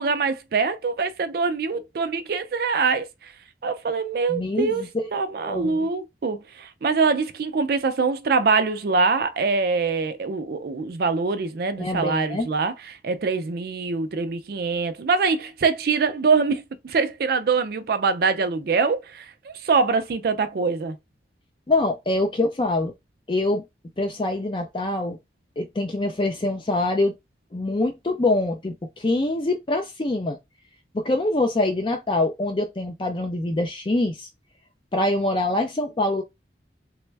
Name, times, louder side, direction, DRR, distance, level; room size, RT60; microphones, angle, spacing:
voice 1, 0.0-3.3 3.6-4.9 5.1-21.0, right 4 dB, 55° right, 0.4 m, -24 dB
voice 2, 4.3-4.9 5.5-5.9 11.8-12.5 21.7-22.9 23.3-23.6 24.0-25.2 25.6-27.1 27.5-30.4 30.9-34.3 34.9-36.2, left 2 dB, 30° left, 0.4 m, -24 dB
3.3 x 2.1 x 3.2 m
head